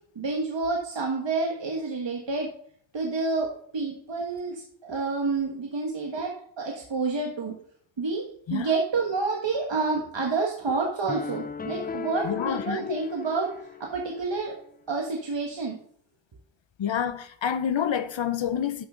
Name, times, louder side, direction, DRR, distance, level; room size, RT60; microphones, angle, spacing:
voice 1, 0.1-2.5 2.9-7.5 8.0-8.2 8.5-14.5 14.9-15.8, right 4 dB, 65° right, 1.7 m, -29 dB
sound 1, 11.1-14.3, left 5 dB, 20° left, 0.4 m, -36 dB
voice 2, 12.2-13.0 16.8-18.9, left 8 dB, 70° left, 0.7 m, -28 dB
12.5 x 5.9 x 3.8 m
cardioid pair, 60°, 46 cm